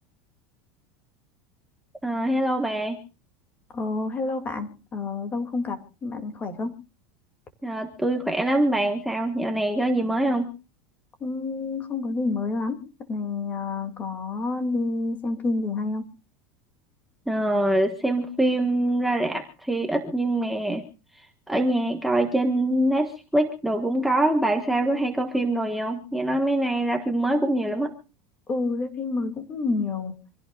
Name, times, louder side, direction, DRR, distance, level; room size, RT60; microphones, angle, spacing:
voice 1, 2.0-3.0 7.6-10.5 17.3-20.8 21.5-27.9, right 1 dB, ahead, 1.4 m, -24 dB
voice 2, 3.7-6.8 11.2-12.8 13.1-16.1 28.5-30.2, left 3 dB, 20° left, 2.4 m, -29 dB
26.5 x 17.0 x 2.4 m
supercardioid pair, 160°, 8 cm